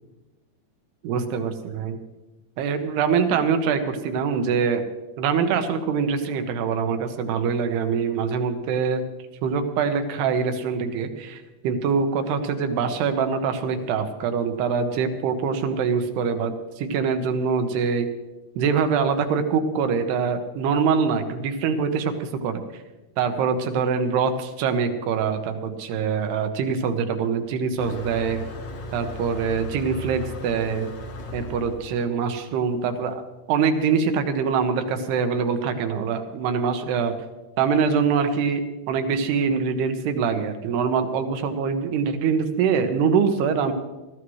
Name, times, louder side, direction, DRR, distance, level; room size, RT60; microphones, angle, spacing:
voice 1, 1.0-2.0 2.6-4.8 5.2-9.0 9.4-18.1 18.6-22.6 23.2-28.4 28.9-30.9 31.3-33.2 33.5-37.1 37.6-38.6 38.9-43.7, right 6 dB, 90° right, 7 dB, 3.1 m, -24 dB
Motor vehicle (road), 27.8-32.9, left 1 dB, 55° left, 2.5 m, -36 dB
21.0 x 14.5 x 3.2 m, 1.1 s
omnidirectional pair, 4.6 m